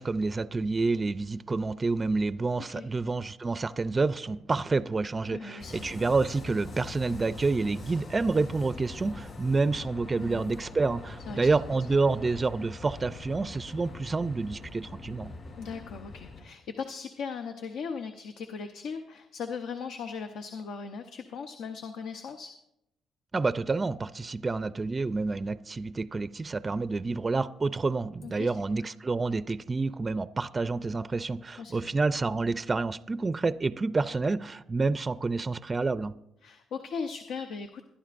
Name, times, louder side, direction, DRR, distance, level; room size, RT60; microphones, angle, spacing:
voice 1, 0.0-15.3 23.3-36.2, right 3 dB, 25° right, 0.4 m, -28 dB
voice 2, 5.3-5.9 10.2-10.5 11.3-11.5 15.6-22.5 28.2-28.5 31.6-31.9 36.4-37.8, left 5 dB, 75° left, 0.7 m, -38 dB
sound 1, 5.6-16.4, left 3 dB, 50° left, 6.1 m, -43 dB
21.5 x 11.0 x 2.5 m
cardioid pair, 90°, 0 cm